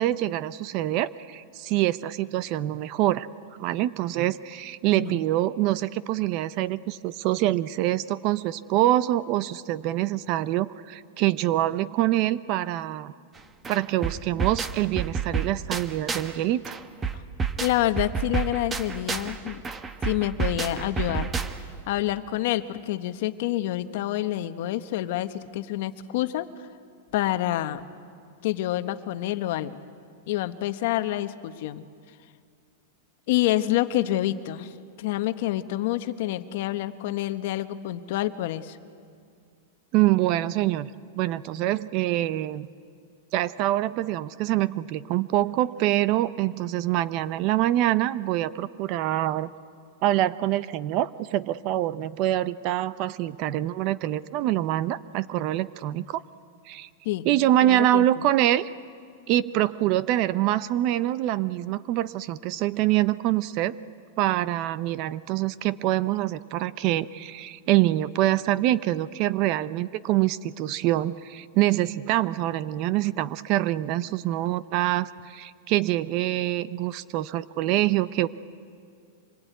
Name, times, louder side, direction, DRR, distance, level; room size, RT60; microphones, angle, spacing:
voice 1, 0.0-3.3 3.6-13.1 13.7-16.8 39.9-40.9 41.2-42.7 43.3-49.5 50.0-56.2 56.7-56.9 57.2-58.7 59.3-63.7 64.2-78.3, right 14 dB, 35° right, 17 dB, 0.6 m, -25 dB
voice 2, 4.9-5.2 17.1-17.2 17.6-19.6 20.0-21.3 21.9-26.5 27.1-27.8 28.4-29.8 30.3-31.9 33.3-38.8 57.0-57.3 57.6-58.2, left 14 dB, 50° left, 11 dB, 1.1 m, -27 dB
sound 1, 13.4-13.5 13.6-16.4 16.6-21.8, right 5 dB, 15° right, 0.9 m, -30 dB
25.5 x 21.0 x 9.4 m, 2.3 s
supercardioid pair, 165°, 0 cm